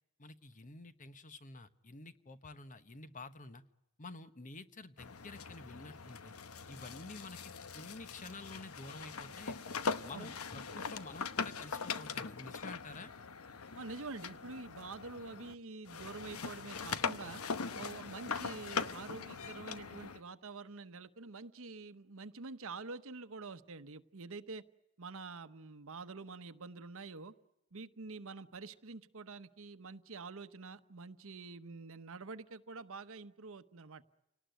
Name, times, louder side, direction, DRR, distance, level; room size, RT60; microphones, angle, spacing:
voice 1, 0.2-3.6 4.0-6.3 6.7-9.6 10.0-13.1, left 2 dB, 35° left, 11 dB, 1.1 m, -50 dB
sound 1, 5.0-15.5 15.9-20.2, left 5 dB, 80° left, 1.0 m, -41 dB
voice 2, 13.8-17.4 17.8-24.6 25.0-27.3 27.7-34.0, right 3 dB, 65° right, 11 dB, 1.0 m, -47 dB
29.0 x 19.0 x 9.2 m, 0.92 s
head